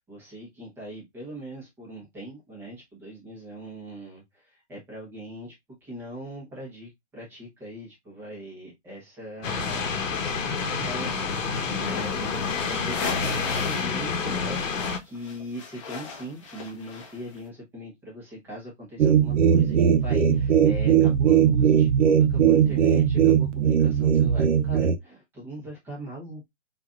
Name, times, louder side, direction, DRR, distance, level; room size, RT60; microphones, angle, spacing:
voice 1, 0.0-4.2 4.7-5.5 5.8-26.5, right 1 dB, 5° right, 0.8 m, -40 dB
sound 1, 9.4-15.0, left 5 dB, 85° left, 1.0 m, -28 dB
sound 2, 11.7-14.0 14.2-17.4, left 5 dB, 25° left, 0.7 m, -37 dB
sound 3, 19.0-25.0, right 8 dB, 70° right, 0.7 m, -19 dB
3.9 x 3.3 x 2.4 m
hypercardioid pair, 160°, 38 cm